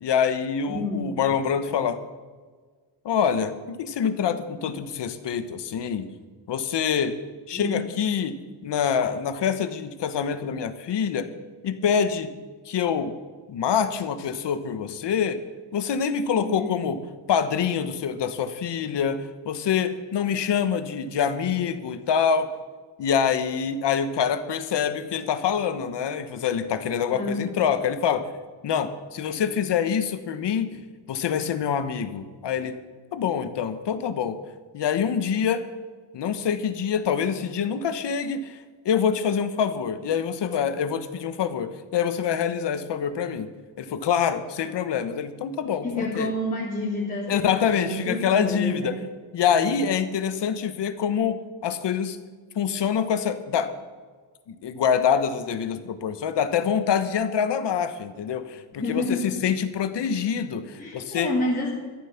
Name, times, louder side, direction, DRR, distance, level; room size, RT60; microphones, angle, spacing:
voice 1, 0.0-2.0 3.0-6.0 6.5-7.1 7.5-8.3 8.6-11.3 11.6-12.3 12.6-13.1 13.5-15.4 15.7-17.0 17.3-22.5 23.0-28.3 28.6-30.7 31.1-32.8 33.1-34.4 34.7-35.6 36.1-38.6 38.8-43.5 43.8-46.3 47.3-48.9 49.3-52.2 52.5-53.7 54.5-61.3, left 7 dB, 65° left, 11 dB, 1.3 m, -25 dB
voice 2, 0.7-1.1 7.5-7.8 16.3-16.9 27.1-27.5 30.7-30.8 45.8-49.0 49.5-49.7 58.8-59.3 60.8-61.7, left 1 dB, 20° left, -7 dB, 3.2 m, -29 dB
13.0 x 11.5 x 5.9 m, 1.5 s
wide cardioid pair, 155°, 45 cm